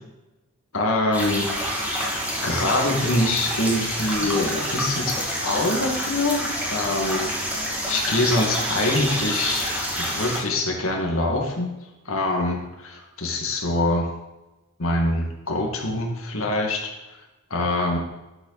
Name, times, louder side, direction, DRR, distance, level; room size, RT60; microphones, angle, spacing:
voice 1, 0.7-11.7 12.1-14.1 14.8-16.8 17.1-17.2 17.5-18.0, left 2 dB, 75° left, 0 dB, 2.3 m, -25 dB
sound 1, 1.1-10.4, equal, 5° right, 2.6 m, -27 dB
12.0 x 8.0 x 4.2 m, 1.0 s
head